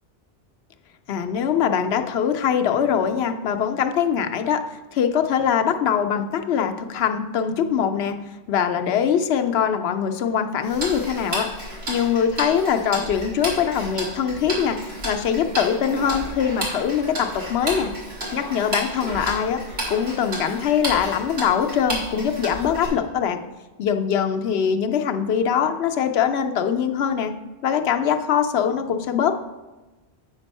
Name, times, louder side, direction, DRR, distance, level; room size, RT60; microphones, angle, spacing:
voice 1, 1.1-4.6 4.9-8.2 8.5-11.5 11.9-14.8 15.0-17.9 18.3-19.6 19.9-23.4 23.8-27.3 27.6-29.3, left 8 dB, 80° left, 6 dB, 0.9 m, -22 dB
Tick-tock, 10.6-22.9, right 1 dB, 85° right, 2.5 m, -32 dB
8.1 x 5.2 x 5.3 m, 1.2 s
omnidirectional pair, 1.1 m